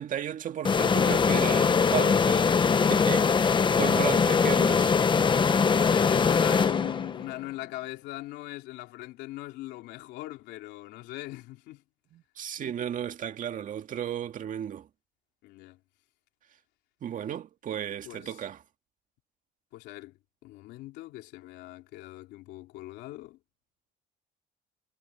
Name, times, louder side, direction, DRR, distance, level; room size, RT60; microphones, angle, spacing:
voice 1, 0.0-2.6 2.9-4.9 12.1-14.9 17.0-18.6, right 9 dB, 50° right, 1.9 m, -34 dB
sound 1, 0.6-7.3, left 5 dB, 30° left, 1.0 m, -22 dB
voice 2, 5.6-11.8 15.4-15.8 18.0-18.4 19.7-20.1 20.4-23.4, left 17 dB, 90° left, 3.4 m, -40 dB
cardioid pair, 110°, 17 cm